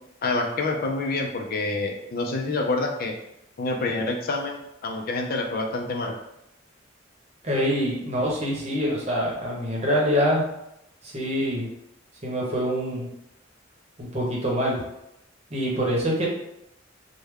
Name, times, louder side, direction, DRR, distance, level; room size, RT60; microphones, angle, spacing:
voice 1, 0.2-3.1 3.6-6.1, left 2 dB, 50° left, 2 dB, 0.4 m, -27 dB
voice 2, 7.4-10.4 11.0-11.7 12.2-13.1 14.0-14.8 15.5-16.2, equal, 35° right, -3 dB, 0.9 m, -25 dB
3.3 x 2.2 x 3.5 m, 0.83 s
head